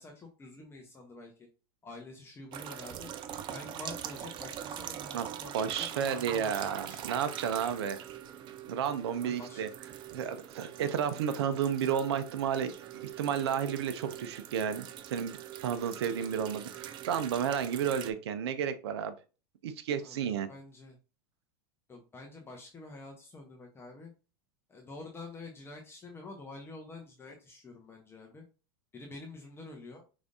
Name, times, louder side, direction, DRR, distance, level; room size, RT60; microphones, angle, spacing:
voice 1, 0.0-1.5 1.8-3.1 3.5-7.0 9.2-9.6 20.0-21.0 21.9-24.1 24.7-28.4 28.9-30.0, left 2 dB, 20° left, 1 dB, 0.9 m, -47 dB
sound 1, 2.5-18.1, right 10 dB, 35° right, 0.5 m, -43 dB
voice 2, 5.5-8.0 8.7-9.7 10.1-15.4 15.6-19.1 19.6-20.5, right 8 dB, 85° right, 10 dB, 0.6 m, -32 dB
5.0 x 3.5 x 2.6 m, 0.33 s
supercardioid pair, 120°, 13 cm